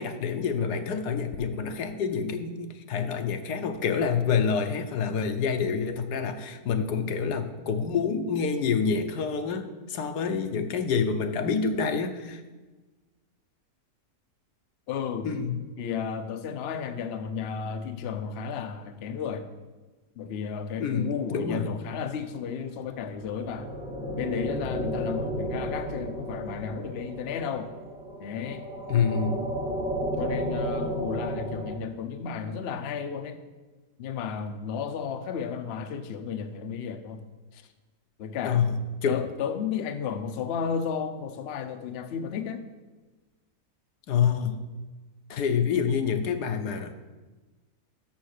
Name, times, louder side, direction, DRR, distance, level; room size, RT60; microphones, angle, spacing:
voice 1, 0.0-12.4 15.2-15.6 20.8-21.7 28.9-29.4 38.4-38.8 39.0-39.2 44.1-44.6 45.3-47.1, left 6 dB, 85° left, 7 dB, 1.3 m, -27 dB
voice 2, 14.9-15.3 15.8-19.5 20.2-23.7 24.2-27.7 28.2-28.6 30.2-33.4 34.0-37.2 37.5-37.6 38.2-38.7 39.1-42.6, left 7 dB, 60° left, 8 dB, 0.7 m, -33 dB
sound 1, 22.9-31.7, equal, 5° right, 0.7 m, -33 dB
6.6 x 6.3 x 6.5 m, 1.2 s
omnidirectional pair, 1.7 m